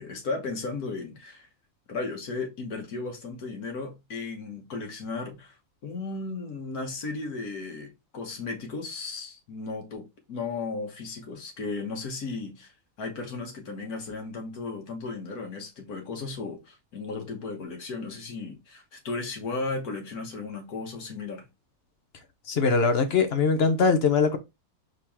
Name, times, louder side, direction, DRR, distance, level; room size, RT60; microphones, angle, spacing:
voice 1, 0.0-1.5 1.9-5.6 5.8-12.7 13.0-21.4, left 3 dB, 85° left, 1.8 m, -35 dB
voice 2, 22.5-24.4, left 5 dB, 50° left, 0.9 m, -22 dB
4.4 x 3.0 x 3.5 m
omnidirectional pair, 1.6 m